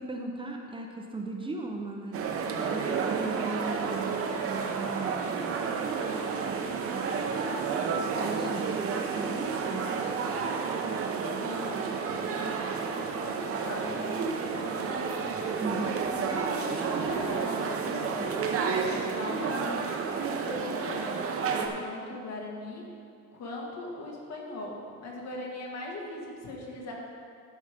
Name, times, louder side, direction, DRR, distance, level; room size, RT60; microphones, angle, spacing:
voice 1, 0.0-2.2 2.7-5.5 6.5-7.4 7.7-7.9 8.2-9.8 15.6-16.0, right 3 dB, 20° right, 1 dB, 0.6 m, -38 dB
sound 1, 2.1-21.7, right 5 dB, 50° right, 0.8 m, -31 dB
voice 2, 11.4-15.1 16.1-19.8 20.3-22.8 23.3-26.9, left 2 dB, 65° left, -2 dB, 1.8 m, -40 dB
12.0 x 5.5 x 5.0 m, 2.3 s
cardioid pair, 175°, 29 cm